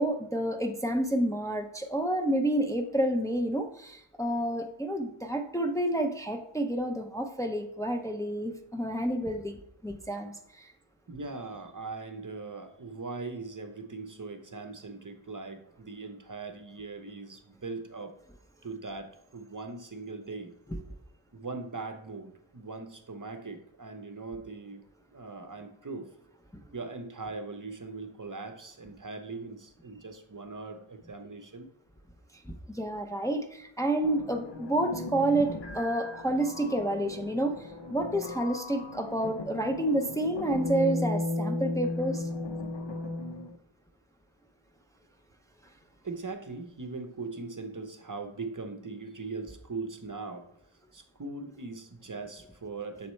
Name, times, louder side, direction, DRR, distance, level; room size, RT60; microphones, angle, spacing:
voice 1, 0.0-10.7 32.7-42.3, right 1 dB, 5° left, 4 dB, 0.6 m, -29 dB
voice 2, 11.1-18.2 18.6-20.5 21.3-24.8 25.1-26.1 26.7-31.7 46.0-50.5 50.9-53.1, right 3 dB, 45° right, 6 dB, 0.7 m, -40 dB
sound 1, 34.0-43.6, left 2 dB, 65° left, 0.7 m, -36 dB
7.0 x 4.2 x 3.1 m, 0.77 s
wide cardioid pair, 40°, 45 cm